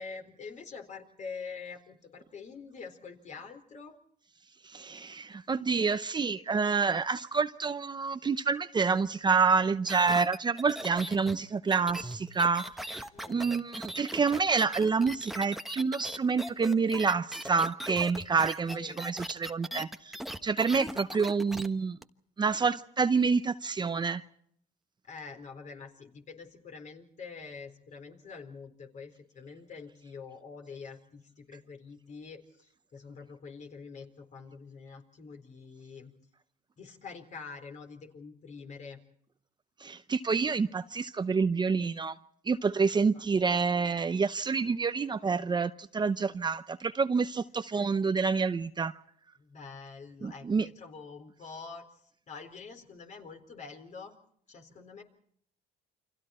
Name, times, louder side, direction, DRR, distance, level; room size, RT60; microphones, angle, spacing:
voice 1, 0.0-3.9 13.1-13.6 18.7-19.0 25.1-36.1 36.8-39.0 43.1-43.3 49.4-51.8 52.3-54.1 54.5-55.0, left 5 dB, 45° left, 4.1 m, -46 dB
voice 2, 4.7-13.0 13.3-22.0 22.4-24.2 39.8-42.1 42.5-48.9 50.2-50.7, right 5 dB, 25° right, 0.8 m, -28 dB
sound 1, 9.9-21.7 22.0-22.1, right 1 dB, ahead, 1.2 m, -39 dB
29.5 x 25.5 x 4.4 m
cardioid pair, 110°, 17 cm